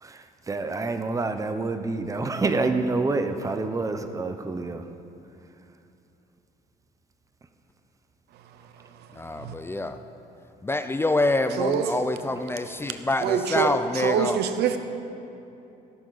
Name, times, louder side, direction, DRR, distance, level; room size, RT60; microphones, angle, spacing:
voice 1, 0.0-4.8, right 3 dB, 20° right, 0.8 m, -27 dB
voice 2, 9.1-10.0 10.6-14.4, left 2 dB, 15° left, 0.5 m, -26 dB
voice 3, 11.6-12.0 13.2-14.8, right 8 dB, 75° right, 0.9 m, -25 dB
17.5 x 11.0 x 4.1 m
cardioid pair, 110°, 17 cm